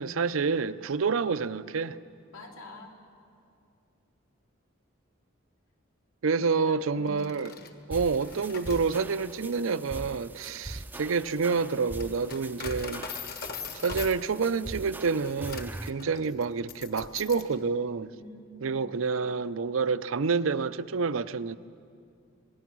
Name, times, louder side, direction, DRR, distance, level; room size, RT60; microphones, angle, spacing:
voice 1, 0.0-2.0 6.2-7.5 7.9-13.0 13.8-18.1 18.6-21.6, right 5 dB, 85° right, 0.6 m, -28 dB
voice 2, 2.3-3.0 6.4-7.4 18.2-18.9, left 1 dB, 90° left, 2.8 m, -46 dB
Coin (dropping), 7.1-17.6, left 6 dB, 50° left, 1.4 m, -43 dB
sound 1, 7.9-15.9, right 1 dB, 10° right, 0.4 m, -42 dB
26.0 x 19.5 x 6.2 m
head